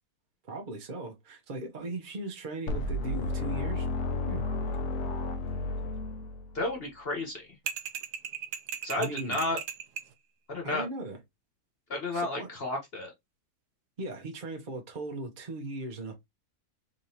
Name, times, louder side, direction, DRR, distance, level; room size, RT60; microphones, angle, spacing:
voice 1, 0.5-3.9 4.3-4.5 9.0-9.4 10.6-11.2 12.1-12.5 14.0-16.1, right 2 dB, 40° right, 0.8 m, -38 dB
sound 1, 2.7-6.7, left 2 dB, 65° left, 1.0 m, -32 dB
voice 2, 6.5-7.5 8.8-9.6 10.5-10.9 11.9-13.1, left 2 dB, 40° left, 1.1 m, -32 dB
sound 2, 7.7-10.1, right 8 dB, 90° right, 1.2 m, -37 dB
3.7 x 3.3 x 2.8 m
omnidirectional pair, 1.7 m